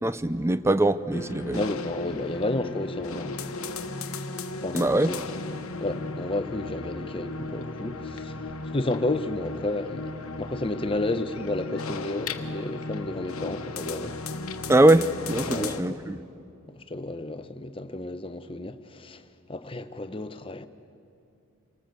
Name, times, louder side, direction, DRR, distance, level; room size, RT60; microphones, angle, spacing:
voice 1, 0.0-1.6 4.7-5.1 14.7-16.2, right 1 dB, 10° right, 0.5 m, -22 dB
sound 1, 1.1-15.8, left 3 dB, 75° left, 1.2 m, -35 dB
voice 2, 1.5-3.4 4.6-5.0 5.8-8.4 8.7-14.2 15.5-15.9 16.7-19.2 19.5-20.7, left 2 dB, 25° left, 0.8 m, -31 dB
28.0 x 19.0 x 7.9 m
head